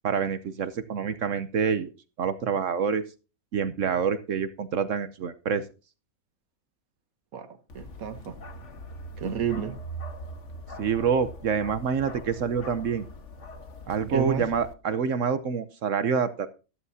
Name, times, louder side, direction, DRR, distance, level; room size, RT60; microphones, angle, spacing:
voice 1, 0.0-1.9 2.2-3.0 3.5-5.6 10.8-13.0 13.9-16.5, right 6 dB, 70° right, 1.2 m, -27 dB
voice 2, 7.3-8.4 9.2-9.8 14.1-14.4, right 7 dB, 90° right, 1.6 m, -31 dB
Bark, 7.7-14.7, equal, 60° left, 1.7 m, -42 dB
13.5 x 12.5 x 2.7 m
omnidirectional pair, 1.4 m